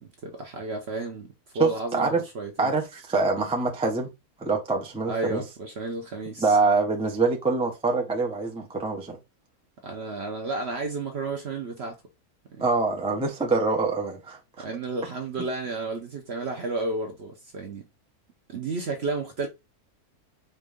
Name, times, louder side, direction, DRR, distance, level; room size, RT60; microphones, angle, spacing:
voice 1, 0.0-2.7 5.0-6.6 9.8-12.0 12.5-12.6 14.6-17.9 18.5-19.5, right 3 dB, 55° right, 0.8 m, -32 dB
voice 2, 1.6-2.2 2.6-4.1 4.4-5.4 6.4-9.2 12.6-14.6, right 3 dB, 5° right, 0.4 m, -25 dB
4.5 x 2.5 x 3.4 m
omnidirectional pair, 1.6 m